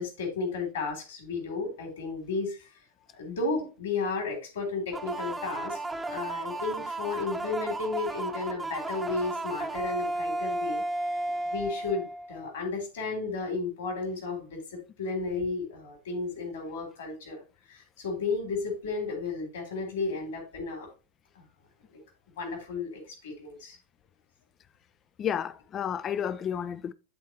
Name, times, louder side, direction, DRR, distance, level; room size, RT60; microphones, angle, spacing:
voice 1, 0.0-2.7 3.2-5.8 6.1-10.8 11.2-17.4 17.7-20.9 21.3-21.4 21.9-22.0 22.4-23.8, left 4 dB, 60° left, 3.3 m, -33 dB
sound 1, 4.9-12.5, right 2 dB, 10° right, 0.9 m, -33 dB
voice 2, 25.2-26.9, left 8 dB, 25° left, 0.5 m, -31 dB
12.0 x 4.2 x 2.9 m
figure-of-eight pair, 90°, 0 cm